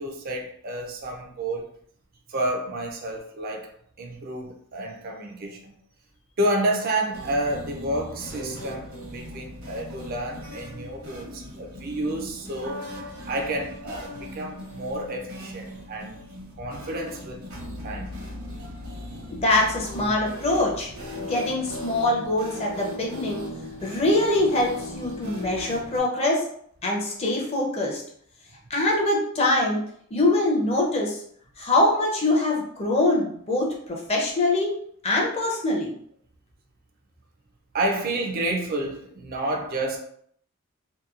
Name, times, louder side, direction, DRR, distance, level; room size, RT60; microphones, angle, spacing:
voice 1, 0.0-1.7 2.3-3.7 4.0-5.7 6.4-16.2 16.6-17.4 17.8-18.2 37.7-40.0, right 1 dB, 45° right, 0.4 m, -30 dB
sound 1, 7.1-26.0, left 1 dB, 75° right, 0.9 m, -38 dB
voice 2, 19.3-20.9 21.2-23.4 23.8-26.5 26.8-28.0 28.7-29.8 30.1-31.2 31.6-34.7 35.0-36.0, left 2 dB, 30° left, 0.5 m, -23 dB
2.8 x 2.2 x 2.4 m
head